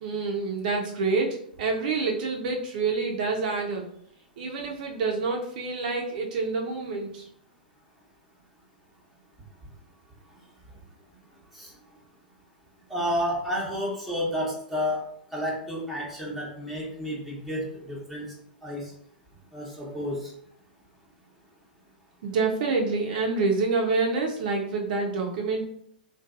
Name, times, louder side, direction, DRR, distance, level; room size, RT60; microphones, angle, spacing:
voice 1, 0.0-3.9 4.4-7.3 22.2-25.6, right 4 dB, 60° right, 1 dB, 0.5 m, -27 dB
voice 2, 12.9-15.0 15.3-18.3 18.6-18.8 19.5-20.3, equal, ahead, -5 dB, 0.8 m, -30 dB
2.6 x 2.2 x 2.4 m, 0.67 s
hypercardioid pair, 115°, 5 cm